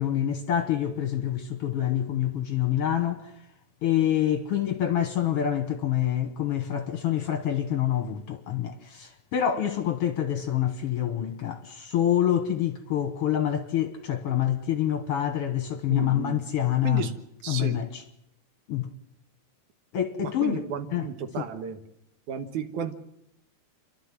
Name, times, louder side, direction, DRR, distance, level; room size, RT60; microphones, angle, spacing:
voice 1, 0.0-3.3 3.8-17.1 17.5-18.0 18.7-18.9 19.9-20.6 20.9-21.0 21.4-21.5, left 11 dB, 60° left, 1.7 m, -26 dB
voice 2, 15.9-16.4 16.8-17.1 17.4-17.8 20.2-21.8 22.3-22.9, right 8 dB, 70° right, 2.6 m, -33 dB
29.5 x 12.0 x 7.5 m
omnidirectional pair, 3.6 m